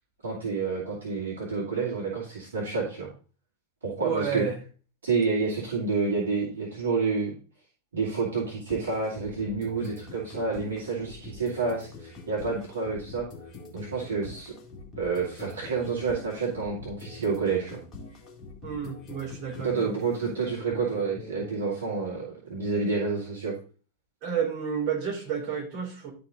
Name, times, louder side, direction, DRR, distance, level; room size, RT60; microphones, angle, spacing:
voice 1, 0.2-3.1 3.8-4.4 5.0-7.3 7.9-13.3 13.7-14.5 15.0-17.8 19.6-23.5, right 4 dB, 70° right, -4 dB, 2.3 m, -29 dB
voice 2, 4.0-4.6 18.6-20.0 24.2-26.1, right 7 dB, 40° right, -2 dB, 3.8 m, -31 dB
sound 1, 8.7-21.6, left 3 dB, 25° left, 2.1 m, -44 dB
11.0 x 4.4 x 3.8 m, 0.37 s
figure-of-eight pair, 90°, 0 cm